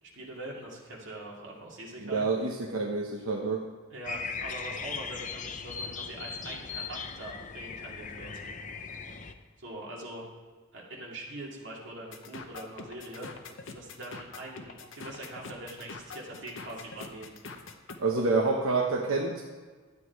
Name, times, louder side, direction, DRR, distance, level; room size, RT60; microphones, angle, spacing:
voice 1, 0.0-2.3 3.9-8.4 9.6-10.3 10.7-17.3, right 1 dB, 60° right, -3 dB, 2.5 m, -43 dB
voice 2, 2.0-3.6 18.0-19.4, right 3 dB, 85° right, -1 dB, 1.1 m, -28 dB
sound 1, 4.0-9.3, left 5 dB, 35° left, 0.6 m, -38 dB
sound 2, 12.1-18.0, left 4 dB, 65° left, 0.9 m, -44 dB
12.5 x 8.4 x 4.7 m, 1.5 s
head